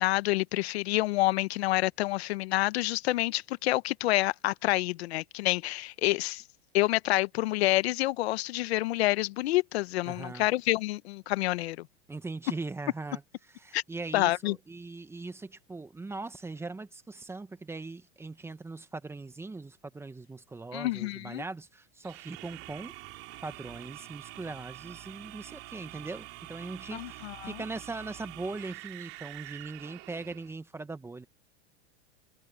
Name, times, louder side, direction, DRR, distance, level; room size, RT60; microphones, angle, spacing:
voice 1, 0.0-6.4 6.7-11.9 13.7-13.8 14.1-14.6 20.7-21.4 26.9-27.6, left 18 dB, 70° left, 1.1 m, -28 dB
voice 2, 10.1-10.5 12.1-22.9 23.4-31.3, right 3 dB, 5° right, 1.0 m, -40 dB
sound 1, 22.0-30.5, right 20 dB, 45° right, 3.0 m, -46 dB
supercardioid pair, 140°, 33 cm